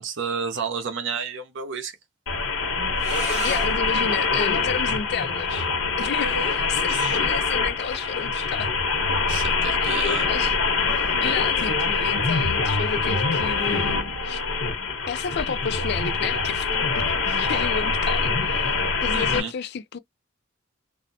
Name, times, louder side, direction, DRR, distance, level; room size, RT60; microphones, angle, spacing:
voice 1, 0.0-2.0 6.9-7.2 9.3-10.3 19.1-19.5, right 5 dB, 65° right, 0.7 m, -31 dB
sound 1, 2.3-19.4, left 4 dB, 75° left, 1.1 m, -24 dB
sound 2, 3.0-8.7, right 2 dB, 35° right, 0.9 m, -40 dB
voice 2, 3.4-5.7 6.0-8.7 9.8-10.5 10.8-14.4 15.1-18.7 19.0-20.0, left 7 dB, 55° left, 0.4 m, -31 dB
2.6 x 2.1 x 2.6 m
head